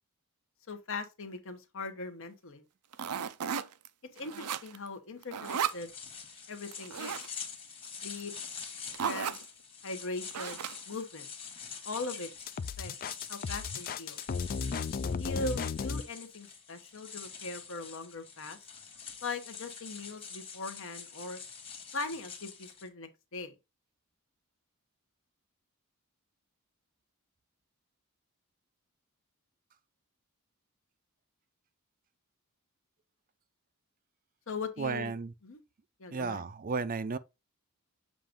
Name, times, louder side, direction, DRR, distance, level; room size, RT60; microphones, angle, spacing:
voice 1, 0.7-2.6 4.1-5.9 6.5-7.2 8.0-8.3 9.0-9.4 9.8-11.3 11.8-12.3 12.8-12.9 13.3-14.2 15.2-18.6 19.2-21.4 21.9-23.5 34.5-35.1 35.4-35.6 36.0-36.4, left 3 dB, 60° left, 1.1 m, -40 dB
sound 1, 2.9-3.9 4.2-4.9 5.2-5.8 6.7-7.3 8.2-8.3 8.6-8.7 8.9-9.4 10.3-10.9, right 8 dB, 90° right, 0.5 m, -35 dB
sound 2, 5.4-22.9, left 6 dB, 25° left, 1.4 m, -46 dB
sound 3, 12.5-16.0, left 5 dB, 40° left, 0.3 m, -34 dB
voice 2, 34.8-35.3 36.1-37.2, right 4 dB, 40° right, 0.5 m, -33 dB
7.5 x 2.6 x 5.1 m
head